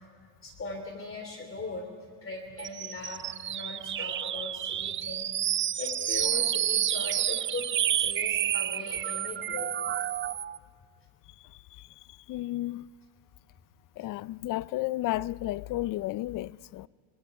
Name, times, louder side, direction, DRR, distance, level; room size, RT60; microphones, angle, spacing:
voice 1, 0.4-1.9 2.2-3.2 3.5-7.7 8.0-9.7 14.0-14.1, left 3 dB, 30° left, 3.1 m, -39 dB
sound 1, 2.6-10.6, right 10 dB, 30° right, 0.4 m, -30 dB
voice 2, 11.4-12.9 14.0-16.9, left 16 dB, 55° left, 0.5 m, -33 dB
24.5 x 24.5 x 4.8 m
cardioid pair, 105°, 40 cm